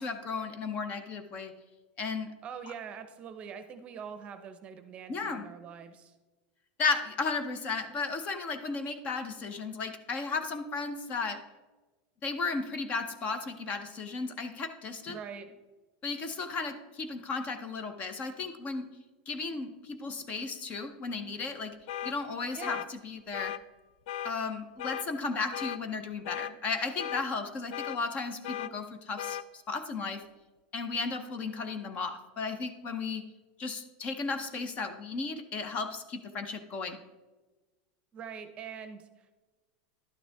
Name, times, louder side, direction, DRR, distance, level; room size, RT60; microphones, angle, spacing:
voice 1, 0.0-1.5 2.0-2.3 5.1-5.4 6.8-11.4 12.2-15.2 16.0-18.9 19.3-21.7 22.0-23.5 24.2-29.4 29.7-30.2 30.7-33.2 33.6-37.0, left 4 dB, 30° left, 9 dB, 0.7 m, -34 dB
voice 2, 2.4-6.1 15.1-15.5 22.5-22.8 38.1-39.3, right 7 dB, 25° right, 10 dB, 0.7 m, -43 dB
sound 1, 21.9-22.1 22.6-22.9 23.3-23.6 24.1-24.3 24.8-25.1 25.5-25.8 26.3-26.5 27.0-27.3 27.7-28.0 28.4-28.7 29.2-29.4, left 11 dB, 65° left, 0.4 m, -36 dB
11.5 x 9.2 x 3.4 m, 1.2 s
supercardioid pair, 160°, 5 cm